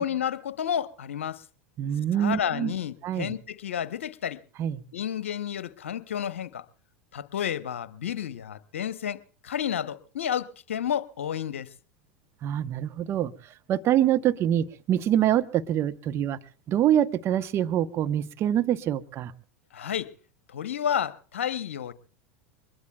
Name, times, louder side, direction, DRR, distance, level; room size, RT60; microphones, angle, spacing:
voice 1, 0.0-1.4 2.1-4.4 4.9-6.6 7.1-11.7 19.7-20.1 20.5-21.9, left 9 dB, 80° left, 0.9 m, -31 dB
voice 2, 1.8-2.7 3.0-3.3 4.6-4.8 12.4-13.3 13.7-16.4 16.7-19.3, right 11 dB, 40° right, 0.9 m, -25 dB
23.5 x 21.0 x 2.3 m
hypercardioid pair, 90°, 7 cm